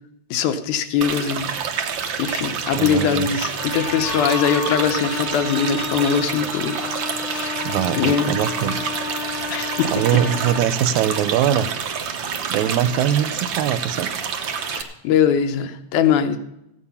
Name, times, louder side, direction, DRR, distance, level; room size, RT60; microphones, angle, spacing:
voice 1, 0.3-1.5 2.2-6.8 7.3-7.6 8.0-8.4 9.5-9.9 14.7-16.4, left 8 dB, 90° left, 9 dB, 2.3 m, -21 dB
sound 1, 1.0-14.8, right 6 dB, 65° right, 1.2 m, -28 dB
voice 2, 2.8-3.3 7.6-8.8 9.9-11.7 12.5-14.1, right 10 dB, 80° right, 14 dB, 2.0 m, -22 dB
Trumpet, 3.6-10.7, left 6 dB, 60° left, 1.5 m, -32 dB
sound 2, 4.0-7.8, equal, 35° right, 0.8 m, -34 dB
15.5 x 8.8 x 5.6 m, 0.84 s
omnidirectional pair, 3.4 m